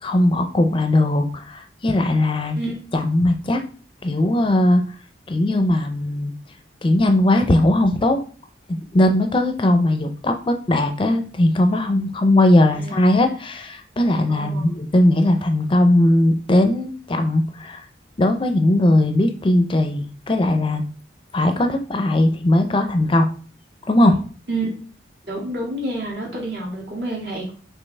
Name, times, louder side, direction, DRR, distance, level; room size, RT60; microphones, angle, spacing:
voice 1, 0.0-2.6 2.9-3.6 4.0-4.8 5.3-6.3 6.8-8.2 8.7-17.8 18.2-20.8 21.3-23.3 23.9-24.2, left 1 dB, 30° left, 6 dB, 0.5 m, -19 dB
voice 2, 14.3-14.7 24.5-24.7 25.3-27.5, right 2 dB, 75° right, -3 dB, 2.0 m, -28 dB
5.3 x 3.0 x 3.3 m, 0.41 s
head